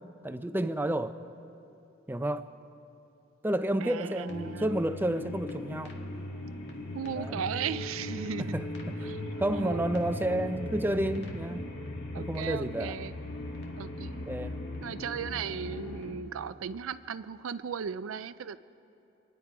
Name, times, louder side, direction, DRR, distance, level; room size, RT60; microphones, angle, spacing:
voice 1, 0.2-1.2 2.1-2.5 3.4-5.9 7.1-7.4 8.5-8.7 9.0-9.1 9.4-11.6 12.2-13.0 14.2-14.5, right 1 dB, 10° right, 10 dB, 0.5 m, -30 dB
voice 2, 3.8-4.8 6.9-8.6 9.0-9.2 9.5-9.9 12.1-13.1 13.7-14.2 14.8-18.6, right 7 dB, 85° right, 14 dB, 0.4 m, -36 dB
sound 1, 4.3-16.1, left 1 dB, 60° left, 1.8 m, -38 dB
28.0 x 10.5 x 4.8 m, 2.9 s
head